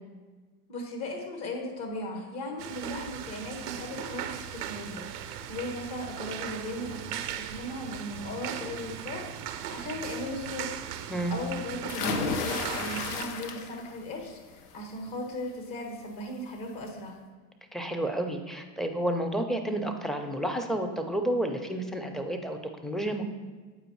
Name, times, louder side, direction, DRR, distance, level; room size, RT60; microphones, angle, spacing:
voice 1, 0.7-17.2, left 1 dB, 55° left, 2 dB, 1.7 m, -37 dB
sound 1, 2.6-13.2, right 10 dB, 90° right, 0.5 m, -38 dB
sound 2, 11.9-14.0 14.4-14.8 16.2-16.3 16.7-16.8, left 5 dB, 80° left, 0.7 m, -33 dB
voice 2, 17.7-23.2, right 1 dB, ahead, 5 dB, 0.4 m, -30 dB
8.0 x 4.9 x 3.1 m, 1.4 s
hypercardioid pair, 80°, 46 cm